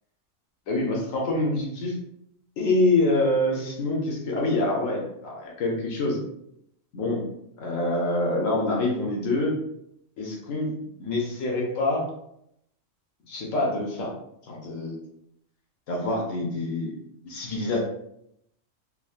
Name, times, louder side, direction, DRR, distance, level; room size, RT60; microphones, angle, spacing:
voice 1, 0.7-1.9 2.6-6.2 6.9-7.3 7.6-9.6 10.2-12.1 13.3-14.1 14.4-15.0 15.9-16.9 17.2-17.8, left 2 dB, 80° left, -2 dB, 1.1 m, -26 dB
3.6 x 2.1 x 2.4 m, 0.77 s
omnidirectional pair, 1.4 m